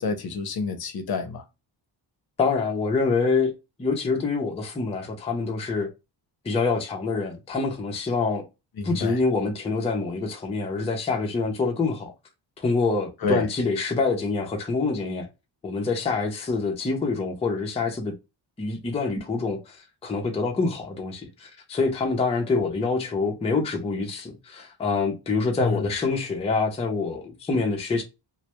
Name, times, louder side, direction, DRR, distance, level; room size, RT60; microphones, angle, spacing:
voice 1, 0.0-1.4 8.8-9.2 13.2-13.5 25.6-25.8, left 4 dB, 55° left, 0.6 m, -28 dB
voice 2, 2.4-3.5 3.8-5.9 6.4-8.5 8.8-12.1 12.6-15.3 15.6-18.1 18.6-28.0, left 4 dB, 15° left, 0.4 m, -26 dB
2.1 x 2.1 x 2.8 m
wide cardioid pair, 160°, 45 cm